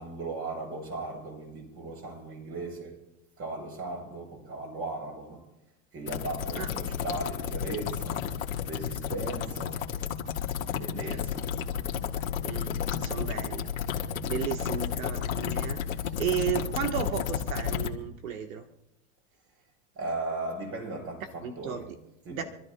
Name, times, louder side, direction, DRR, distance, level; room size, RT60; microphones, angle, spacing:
voice 1, 0.0-3.1 3.4-5.5 5.9-9.9 10.7-11.9 12.6-13.3 14.2-14.5 16.0-16.1 19.9-22.4, right 2 dB, 35° right, 6.8 m, -38 dB
Water bubbles loop, 6.1-17.9, left 8 dB, 90° left, 1.8 m, -32 dB
voice 2, 12.4-14.0 14.3-15.8 16.2-18.6 21.4-21.8 22.3-22.4, right 9 dB, 80° right, 1.4 m, -34 dB
27.5 x 13.5 x 2.3 m
hypercardioid pair, 105°, 40 cm